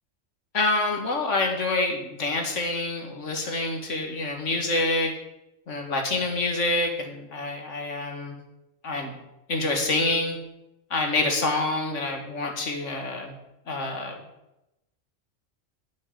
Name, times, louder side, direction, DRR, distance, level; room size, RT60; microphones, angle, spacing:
voice 1, 0.5-5.1 5.7-8.4 8.8-9.1 9.5-10.4 10.9-13.3 13.7-14.2, left 2 dB, 75° left, 3 dB, 2.1 m, -27 dB
11.0 x 6.4 x 7.5 m, 0.91 s
omnidirectional pair, 1.3 m